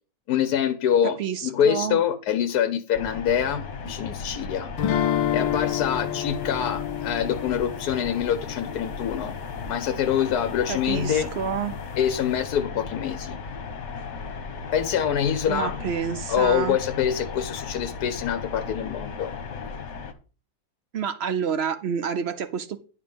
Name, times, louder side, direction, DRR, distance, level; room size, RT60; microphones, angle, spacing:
voice 1, 0.3-4.7 5.3-9.3 9.7-11.3 12.0-13.4 14.7-15.8 16.3-19.3, left 9 dB, 65° left, 1.1 m, -25 dB
voice 2, 1.2-2.0 10.7-11.7 15.5-16.8 20.9-22.8, right 7 dB, 65° right, 0.6 m, -28 dB
sound 1, 2.9-20.1, left 5 dB, 45° left, 1.2 m, -36 dB
sound 2, 4.8-9.7, left 10 dB, 90° left, 1.4 m, -29 dB
10.5 x 3.7 x 7.0 m
omnidirectional pair, 2.0 m